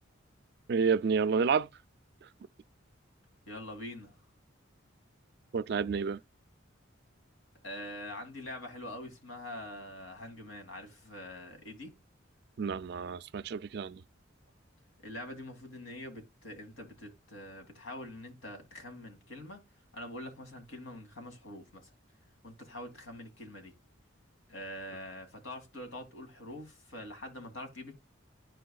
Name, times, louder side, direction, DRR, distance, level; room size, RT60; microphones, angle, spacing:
voice 1, 0.7-1.7 2.2-2.3 5.5-6.2 12.6-14.0, right 5 dB, 55° right, 0.3 m, -29 dB
voice 2, 3.5-4.2 7.6-11.9 15.0-19.6 19.9-21.9 22.4-23.7 24.5-28.0, left 1 dB, 85° left, 2.2 m, -44 dB
11.5 x 4.6 x 2.3 m
head